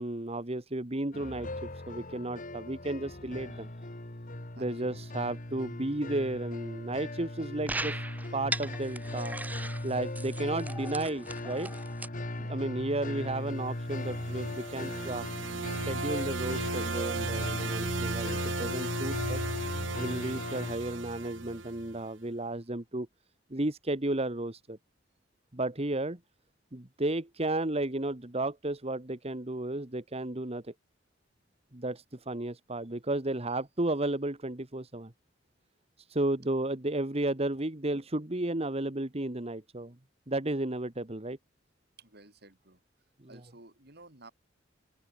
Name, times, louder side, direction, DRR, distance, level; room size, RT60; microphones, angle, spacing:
voice 1, 0.0-3.7 4.6-8.0 8.3-9.4 9.8-11.7 12.4-15.2 15.7-19.4 20.0-23.1 23.5-24.8 25.5-26.2 26.7-30.7 31.7-35.1 36.1-39.9 40.3-41.4, right 2 dB, 35° right, 1.7 m, -33 dB
sound 1, 1.1-20.8, left 1 dB, 45° left, 2.2 m, -38 dB
voice 2, 4.5-5.3 12.3-12.7 42.0-42.8 43.3-44.3, right 2 dB, 60° right, 6.5 m, -54 dB
sound 2, 7.7-12.1, right 2 dB, 10° right, 0.7 m, -39 dB
sound 3, 13.8-22.0, right 3 dB, 85° right, 2.8 m, -35 dB
open air
head